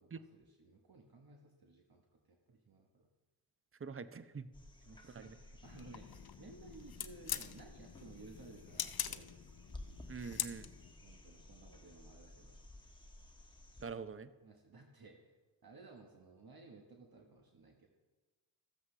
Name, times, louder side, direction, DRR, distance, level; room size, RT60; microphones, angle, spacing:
voice 1, 0.0-3.1 4.1-4.2 4.8-9.4 11.0-12.6 14.4-15.3 15.6-17.9, right 3 dB, 50° right, 2 dB, 1.3 m, -57 dB
voice 2, 3.8-4.5 5.1-5.3 10.1-10.7 13.8-14.3, right 5 dB, 30° right, 13 dB, 0.6 m, -44 dB
sound 1, 4.5-13.9 16.0-16.1, left 1 dB, 10° left, 1.3 m, -55 dB
sound 2, 5.6-10.9, left 9 dB, 50° left, 0.7 m, -44 dB
14.0 x 7.8 x 3.3 m, 1.2 s
cardioid pair, 50°, 48 cm